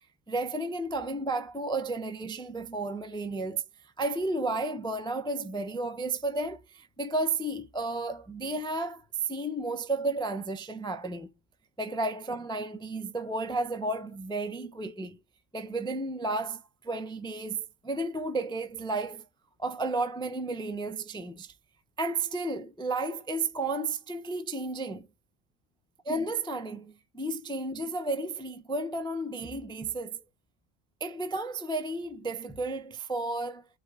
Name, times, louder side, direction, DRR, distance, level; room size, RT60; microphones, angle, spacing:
voice 1, 0.3-3.6 4.0-11.3 11.8-15.2 15.5-19.2 19.6-21.5 22.0-25.1 26.1-30.2 31.0-33.7, right 2 dB, 10° left, 0.3 m, -32 dB
5.1 x 2.2 x 3.8 m
omnidirectional pair, 1.0 m